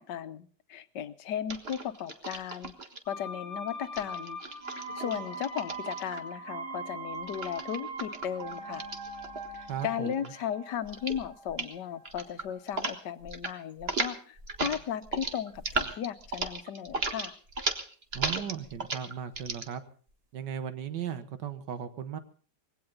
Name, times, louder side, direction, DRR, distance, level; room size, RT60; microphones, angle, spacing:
voice 1, 0.0-2.7 3.1-4.4 5.0-8.8 9.6-17.3, left 9 dB, 80° left, 12 dB, 1.5 m, -36 dB
sound 1, 1.5-3.0 3.8-6.4 7.3-9.8 10.1-10.5 10.9-11.2 11.5-11.7 12.1-13.0 13.2-13.5 13.8-19.7, right 3 dB, 35° right, 1.7 m, -35 dB
sound 2, 3.0-12.8 13.1-13.2, right 2 dB, 5° left, 6.7 m, -41 dB
voice 2, 9.7-10.3 18.1-19.8 20.3-22.2, right 8 dB, 90° right, 11 dB, 1.8 m, -37 dB
20.5 x 16.5 x 3.9 m, 0.43 s
omnidirectional pair, 1.8 m